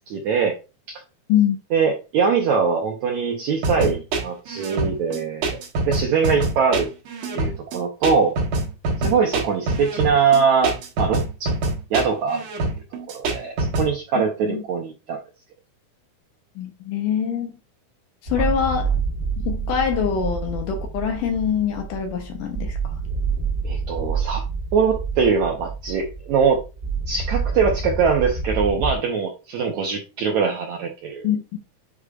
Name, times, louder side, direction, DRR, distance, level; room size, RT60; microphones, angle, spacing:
voice 1, 0.1-0.6 0.9-1.0 1.7-5.6 5.9-6.9 7.3-8.4 9.0-11.5 11.9-12.5 13.1-15.2 23.6-24.4 24.7-26.6 27.1-31.3, right 6 dB, 75° right, 1.7 m, -22 dB
sound 1, 3.6-13.9, right 2 dB, 55° right, 2.1 m, -25 dB
voice 2, 16.6-17.5 18.3-18.9 19.4-22.9 31.2-31.6, left 8 dB, 70° left, 2.2 m, -24 dB
sound 2, 18.3-29.0, right 5 dB, 40° right, 1.6 m, -28 dB
8.0 x 4.9 x 2.4 m
omnidirectional pair, 4.4 m